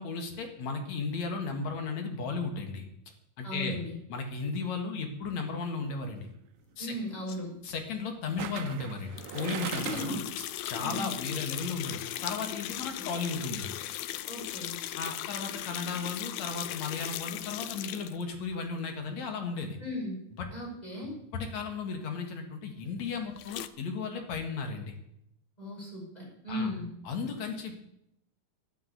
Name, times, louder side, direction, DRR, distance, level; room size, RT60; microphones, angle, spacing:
voice 1, 0.0-2.9 3.4-3.8 4.1-6.3 6.8-7.0 7.6-13.7 15.0-19.8 20.4-20.5 21.3-25.0 26.5-26.7 27.0-27.8, left 4 dB, 55° left, 4 dB, 2.8 m, -35 dB
voice 2, 3.4-4.0 6.8-7.5 9.8-10.3 10.8-11.2 12.7-12.8 14.3-14.8 19.8-20.2 20.5-21.2 25.6-26.9, left 1 dB, 10° left, -2 dB, 5.3 m, -37 dB
sound 1, 5.7-6.0 8.4-10.3 10.7-10.8, right 12 dB, 80° right, 2.4 m, -39 dB
sound 2, 9.2-18.2 23.4-23.7, left 13 dB, 85° left, 1.6 m, -38 dB
12.0 x 9.5 x 8.3 m, 0.77 s
omnidirectional pair, 4.1 m